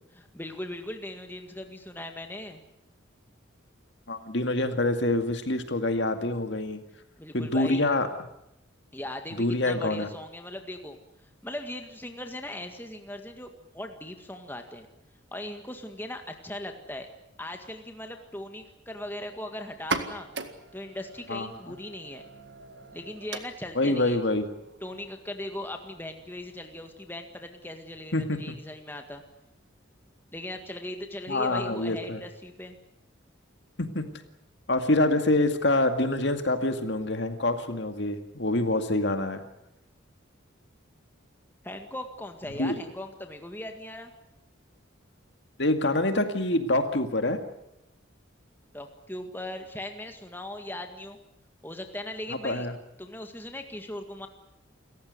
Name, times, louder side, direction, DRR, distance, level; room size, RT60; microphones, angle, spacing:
voice 1, 0.1-2.6 7.2-7.8 8.9-11.0 11.4-14.9 15.3-17.1 17.4-20.3 20.7-22.2 22.9-24.2 24.8-29.2 30.3-32.8 41.6-44.1 48.7-51.2 51.6-52.7 53.0-54.3, left 1 dB, 10° left, 5 dB, 1.8 m, -39 dB
voice 2, 4.1-6.8 7.3-8.1 9.4-10.1 21.3-21.5 23.8-24.5 28.1-28.4 31.3-32.2 33.8-34.1 34.7-39.4 42.6-42.7 45.6-47.4 52.4-52.7, left 2 dB, 60° left, 7 dB, 2.2 m, -26 dB
sound 1, 19.7-27.2, right 4 dB, 55° right, 1.9 m, -40 dB
28.5 x 15.0 x 9.5 m, 0.84 s
head